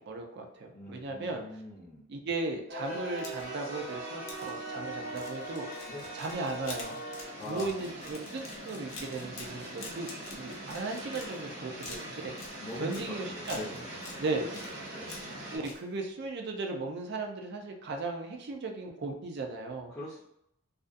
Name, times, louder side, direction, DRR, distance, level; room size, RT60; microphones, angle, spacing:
voice 1, 0.0-1.4 2.1-5.7 6.1-7.0 7.5-12.5 12.8-13.8 14.2-14.5 15.5-19.9, right 3 dB, 55° right, 3 dB, 0.4 m, -36 dB
voice 2, 0.7-2.1 5.9-6.2 7.3-7.8 11.5-11.8 12.6-14.5 14.9-15.2 19.9-20.2, left 1 dB, 15° left, -9 dB, 0.5 m, -43 dB
sound 1, 2.7-15.6, right 1 dB, 70° right, 1.1 m, -41 dB
sound 2, 3.1-3.7 4.3-4.5 5.1-11.5 11.8-13.1 13.4-14.2 14.5-15.4 15.6-15.8, left 3 dB, 80° left, 0.6 m, -46 dB
2.4 x 2.3 x 2.5 m, 0.77 s
head